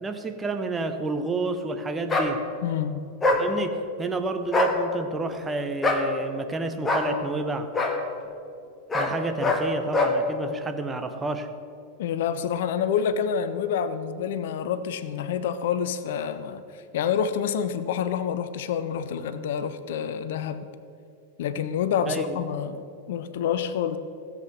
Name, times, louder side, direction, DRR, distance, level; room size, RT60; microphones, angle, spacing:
voice 1, 0.0-2.4 3.4-7.7 8.9-11.5 22.1-22.4, right 3 dB, 15° right, 7 dB, 1.0 m, -30 dB
sound 1, 2.1-2.3 3.2-3.4 4.4-4.7 5.8-6.1 6.8-7.1 7.7-7.9 8.9-9.1 9.4-9.6 9.9-10.1, left 2 dB, 15° left, 1.6 m, -23 dB
voice 2, 2.6-3.0 12.0-20.6 21.4-24.0, left 8 dB, 55° left, 12 dB, 0.6 m, -28 dB
16.5 x 7.7 x 6.6 m, 2.5 s
figure-of-eight pair, 90°, 0 cm